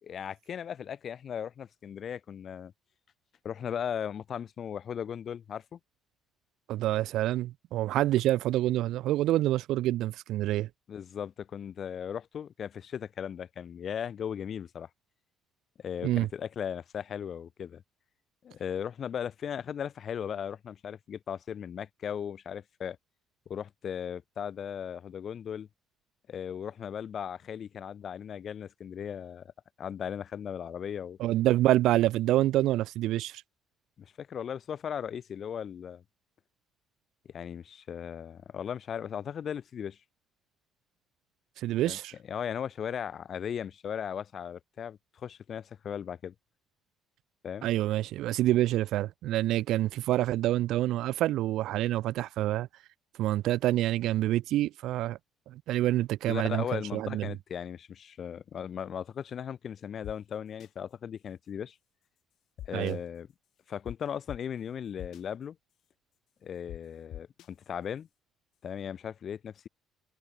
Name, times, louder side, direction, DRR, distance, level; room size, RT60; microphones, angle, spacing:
voice 1, 0.0-2.7 3.4-5.8 10.9-14.9 15.8-17.8 18.4-23.0 23.5-25.7 26.3-29.5 29.8-31.2 34.0-36.0 37.3-40.0 41.8-42.0 42.3-46.3 47.4-47.7 56.3-61.7 62.7-63.3 63.7-65.6 66.4-68.1 68.6-69.7, left 8 dB, 40° left, 4.6 m, -37 dB
voice 2, 6.7-10.7 16.0-16.3 31.2-33.4 41.6-42.1 47.6-52.7 53.2-55.2 55.5-57.3 62.7-63.0, right 14 dB, 70° right, 0.4 m, -27 dB
sound 1, 60.0-60.1 60.6-60.7 62.6-62.9 63.9-64.0 64.3-64.4 65.0-65.2 66.7-66.8 67.1-67.5, left 13 dB, 60° left, 2.3 m, -42 dB
cardioid pair, 160°, 0 cm